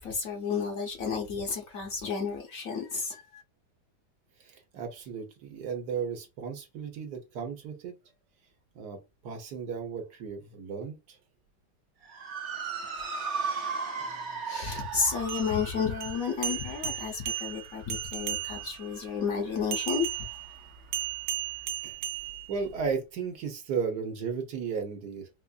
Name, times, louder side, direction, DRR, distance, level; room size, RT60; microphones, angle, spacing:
voice 1, 0.0-3.4 14.4-20.1, left 5 dB, 60° left, 1.1 m, -32 dB
voice 2, 4.4-7.9 8.7-11.2 14.1-14.4 21.8-22.0 22.5-25.3, right 6 dB, 70° right, 1.3 m, -35 dB
Motor vehicle (road) / Siren, 12.0-20.6, right 5 dB, 50° right, 1.0 m, -38 dB
sound 1, 15.2-18.9 19.7-22.9, right 10 dB, 90° right, 1.3 m, -35 dB
4.3 x 2.4 x 2.3 m
omnidirectional pair, 1.9 m